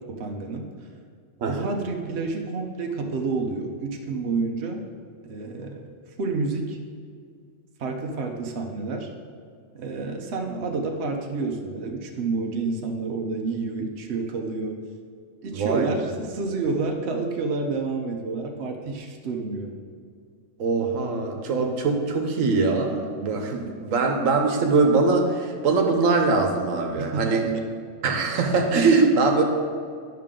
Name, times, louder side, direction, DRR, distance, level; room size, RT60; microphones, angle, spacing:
voice 1, 0.1-0.7 1.4-4.8 5.2-5.8 6.2-6.8 7.8-9.1 9.7-14.8 15.4-19.8 27.0-27.5, right 3 dB, 60° right, 2 dB, 1.0 m, -29 dB
voice 2, 15.5-16.0 20.6-27.5 28.0-29.4, right 4 dB, 90° right, 3 dB, 1.3 m, -22 dB
11.0 x 5.7 x 3.7 m, 2.2 s
omnidirectional pair, 1.3 m